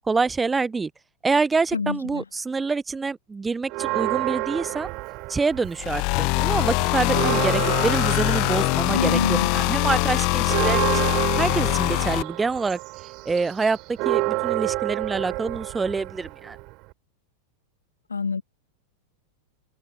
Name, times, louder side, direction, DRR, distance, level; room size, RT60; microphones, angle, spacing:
voice 1, 0.1-0.9 1.2-4.9 5.3-11.1 11.4-12.8 13.3-16.6, right 4 dB, 15° right, 0.4 m, -26 dB
voice 2, 1.7-2.2 8.9-9.7 18.1-18.4, left 5 dB, 75° left, 1.9 m, -26 dB
Church bell, 3.7-6.1 6.4-6.5 6.9-16.9, right 25 dB, 40° right, 3.5 m, -29 dB
sound 1, 5.8-12.2, left 31 dB, 45° left, 0.5 m, -23 dB
figure-of-eight pair, 90°, 0 cm